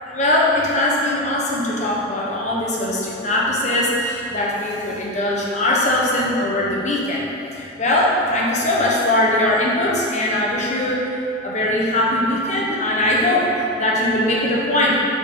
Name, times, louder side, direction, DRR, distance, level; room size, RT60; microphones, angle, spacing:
voice 1, 0.0-7.3 7.5-11.1 11.4-13.5 13.8-15.0, left 1 dB, 35° left, -4 dB, 1.1 m, -20 dB
7.1 x 6.4 x 3.9 m, 2.9 s
head